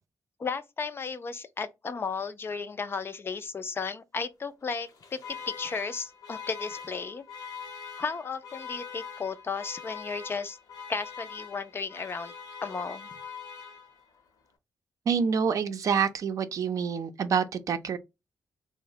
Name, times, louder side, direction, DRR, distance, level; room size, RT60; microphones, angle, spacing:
voice 1, 0.4-7.2 8.0-10.6 10.9-12.3 12.6-13.1, left 5 dB, 35° left, 0.4 m, -34 dB
Alarm, 4.8-14.2, left 6 dB, 70° left, 0.8 m, -43 dB
voice 2, 15.1-18.0, right 6 dB, 55° right, 0.5 m, -27 dB
3.1 x 2.1 x 2.7 m
cardioid pair, 100°, 7 cm